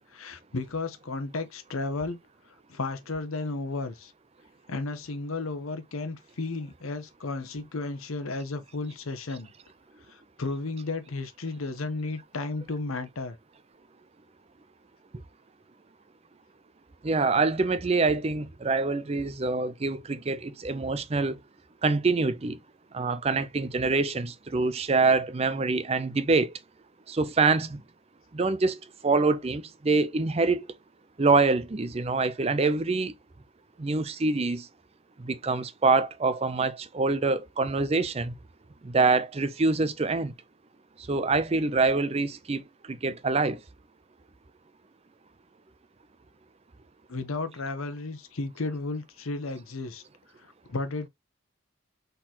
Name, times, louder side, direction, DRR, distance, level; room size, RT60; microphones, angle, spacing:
voice 1, 0.1-2.2 2.7-4.1 4.7-9.5 10.1-13.4 47.1-50.0 50.7-51.1, left 3 dB, 85° left, 0.9 m, -33 dB
voice 2, 17.0-21.4 21.8-22.6 22.9-26.5 27.1-27.8 28.3-30.7 31.2-33.1 33.8-34.7 35.2-38.3 38.8-40.3 41.1-42.6 42.9-43.6, right 3 dB, 30° right, 0.5 m, -25 dB
4.3 x 3.9 x 2.9 m
head